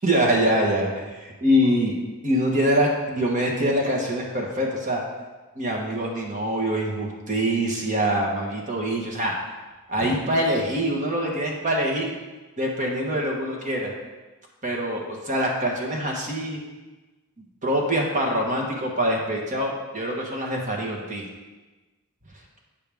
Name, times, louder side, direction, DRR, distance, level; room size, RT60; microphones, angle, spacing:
voice 1, 0.0-1.9 2.2-5.0 5.5-9.3 9.9-12.1 12.6-13.9 14.6-16.6 17.6-21.3, equal, 35° right, 0 dB, 1.3 m, -24 dB
8.6 x 6.7 x 3.5 m, 1.2 s
head